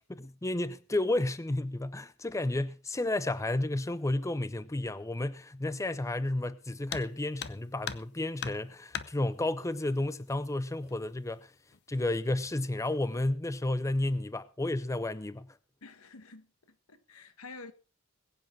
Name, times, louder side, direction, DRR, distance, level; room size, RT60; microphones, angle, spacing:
voice 1, 0.0-11.5 11.9-15.5, left 2 dB, 15° left, 0.6 m, -32 dB
sound 1, 6.9-7.1 7.4-8.1 8.4-9.1 10.3-10.4 10.9-11.0 11.7-12.1 12.5-12.8, left 8 dB, 50° left, 0.8 m, -38 dB
voice 2, 15.8-17.7, left 3 dB, 90° left, 1.5 m, -49 dB
21.0 x 8.7 x 4.3 m
head